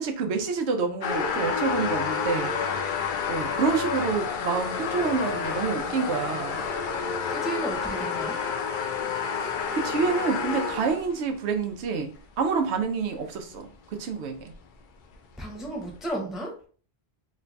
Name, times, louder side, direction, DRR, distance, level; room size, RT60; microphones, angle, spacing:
voice 1, 0.0-2.5 3.3-6.6 9.4-13.7 14.0-14.5, right 5 dB, 90° right, 5 dB, 0.9 m, -28 dB
sound 1, 1.0-11.1 11.8-11.9 13.5-13.6 14.0-14.1 14.5-14.6 15.1-15.2, left 6 dB, 60° left, 0.6 m, -29 dB
voice 2, 7.3-8.4 15.4-16.5, right 2 dB, ahead, -1 dB, 0.7 m, -33 dB
3.1 x 2.2 x 3.9 m, 0.42 s
omnidirectional pair, 1.1 m